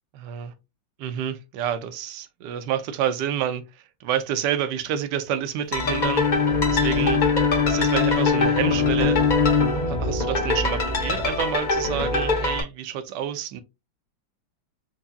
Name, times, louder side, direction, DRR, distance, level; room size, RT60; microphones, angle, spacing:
voice 1, 0.1-0.5 1.0-3.6 4.0-6.2 6.7-7.2 7.7-9.2 9.9-13.6, right 9 dB, 70° right, 1.1 m, -28 dB
sound 1, 5.7-12.6, left 2 dB, 40° left, 0.7 m, -25 dB
Bowed string instrument, 5.8-10.4, left 6 dB, 70° left, 2.0 m, -23 dB
4.7 x 2.7 x 2.6 m
omnidirectional pair, 2.1 m